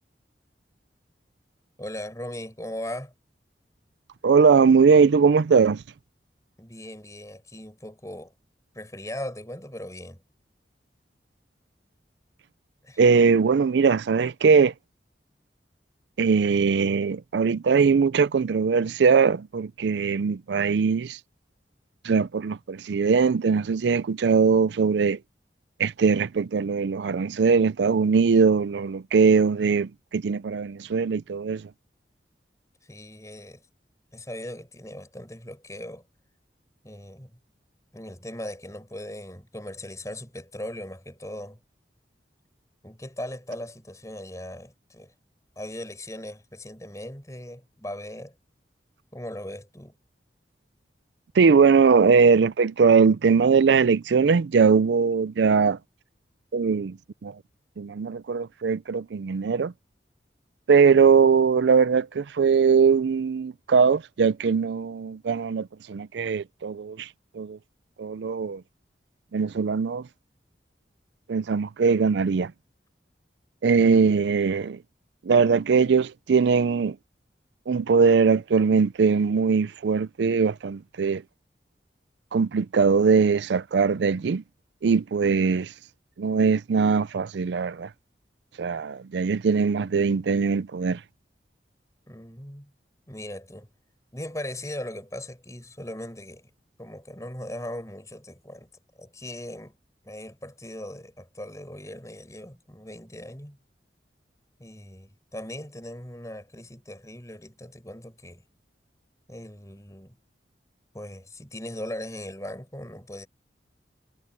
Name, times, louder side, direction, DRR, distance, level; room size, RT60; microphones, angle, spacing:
voice 1, 1.8-3.1 6.6-8.3 8.7-10.2 12.8-13.0 32.8-33.6 34.1-36.0 36.8-37.4 37.9-41.6 42.8-45.1 45.6-48.3 49.1-50.0 92.1-92.7 93.1-93.7 94.1-96.5 96.8-98.7 99.0-99.8 100.0-103.6 104.6-108.4 109.3-110.2 110.9-113.3, left 1 dB, 20° left, 6.6 m, -39 dB
voice 2, 4.2-5.8 13.0-14.7 16.2-21.2 22.0-25.2 25.8-31.7 51.4-55.8 56.5-57.0 57.2-57.3 57.8-59.7 60.7-67.1 67.3-67.6 68.0-68.6 69.3-70.0 71.3-72.5 73.6-74.8 75.3-77.0 77.7-81.2 82.3-84.4 84.8-85.7 86.2-87.9 88.6-91.0, right 5 dB, 80° right, 0.4 m, -21 dB
head